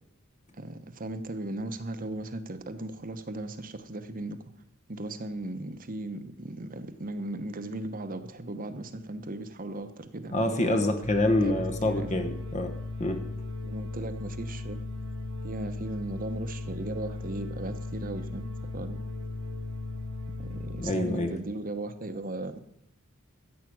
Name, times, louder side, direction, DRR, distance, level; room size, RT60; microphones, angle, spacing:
voice 1, 0.5-4.4 4.9-10.8 11.4-12.3 13.6-14.8 15.4-19.0 20.4-22.6, right 2 dB, 40° right, 9 dB, 1.0 m, -37 dB
voice 2, 10.3-12.7 13.0-13.2 20.8-21.3, left 1 dB, 35° left, 5 dB, 1.2 m, -26 dB
sound 1, 11.0-20.9, left 2 dB, 65° right, 1.3 m, -37 dB
14.0 x 8.3 x 6.2 m, 0.79 s
head